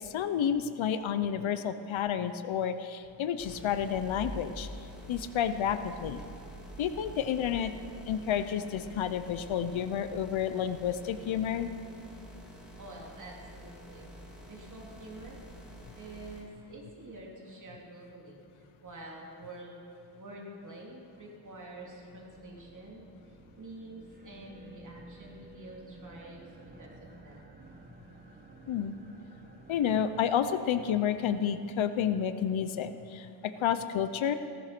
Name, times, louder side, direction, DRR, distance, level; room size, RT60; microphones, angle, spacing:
voice 1, 0.0-4.7 5.1-6.2 6.8-7.7 8.1-11.7 28.7-28.9 29.7-34.4, left 8 dB, 70° left, 11 dB, 0.8 m, -30 dB
sound 1, 3.4-16.4, equal, ahead, 2.7 m, -47 dB
voice 2, 12.8-14.1 14.5-15.4 15.9-19.7 20.1-26.5 26.8-27.4, right 2 dB, 35° right, -2 dB, 3.0 m, -47 dB
sound 2, 21.2-31.8, right 2 dB, 20° right, 1.1 m, -54 dB
16.0 x 14.0 x 6.1 m, 2.5 s
wide cardioid pair, 160°, 50 cm